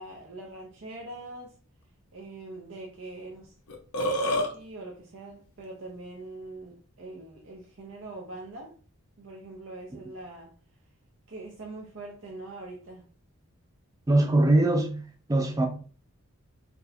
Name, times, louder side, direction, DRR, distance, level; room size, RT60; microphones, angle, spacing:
voice 1, 0.0-1.5 2.1-3.5 4.5-8.7 9.2-10.5 11.3-13.0, right 2 dB, 60° right, 0.6 m, -43 dB
Burping eructation, 3.3-3.4 3.7-4.5, equal, 85° left, 0.8 m, -26 dB
voice 2, 14.1-15.0 15.3-15.7, right 2 dB, 15° right, 0.4 m, -21 dB
4.2 x 2.2 x 2.7 m
head